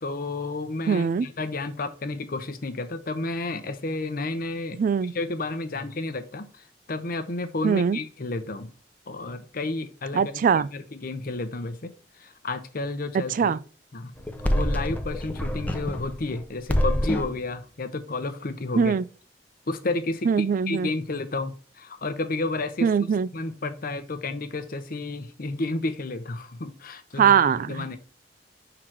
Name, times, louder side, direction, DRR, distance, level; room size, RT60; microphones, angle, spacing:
voice 1, 0.0-4.8 5.1-8.7 9.1-11.9 12.2-13.6 13.9-14.1 14.4-18.9 19.7-22.9 23.3-28.0, left 2 dB, 55° left, 0.8 m, -31 dB
voice 2, 0.9-1.3 4.8-5.1 7.6-8.0 10.1-10.7 13.3-13.6 18.8-19.0 20.3-20.9 22.8-23.3 27.2-28.0, right 6 dB, 50° right, 0.3 m, -22 dB
sound 1, 14.2-16.4 16.7-17.4, equal, 10° left, 0.7 m, -26 dB
6.2 x 3.9 x 4.4 m
head